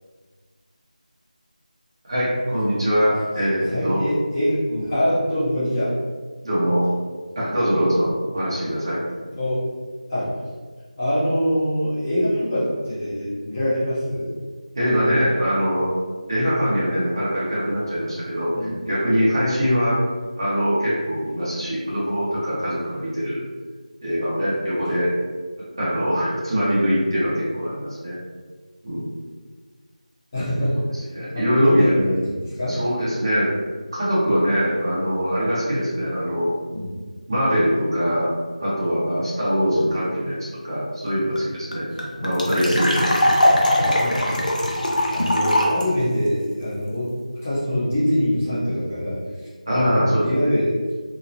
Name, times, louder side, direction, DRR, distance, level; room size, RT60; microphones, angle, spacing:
voice 1, 2.1-4.0 4.7-4.8 6.4-6.9 7.3-9.0 14.7-15.9 16.3-18.5 18.9-20.0 20.4-23.4 24.0-25.1 25.8-28.2 28.8-29.0 31.1-31.9 32.7-33.5 33.9-36.5 37.3-38.3 38.6-41.9 42.2-43.6 44.2-44.4 49.7-50.5, equal, 35° right, -9 dB, 0.9 m, -22 dB
voice 2, 3.7-6.0 9.3-9.7 10.1-10.4 11.0-14.3 18.5-18.8 30.3-32.8 36.7-37.0 41.9-42.0 43.7-44.3 45.1-50.9, equal, 15° left, -11 dB, 0.7 m, -24 dB
sound 1, 41.1-41.2 41.3-41.4 41.7-45.8, left 1 dB, 80° left, 0.6 m, -20 dB
2.9 x 2.0 x 2.6 m, 1.4 s
figure-of-eight pair, 175°, 4 cm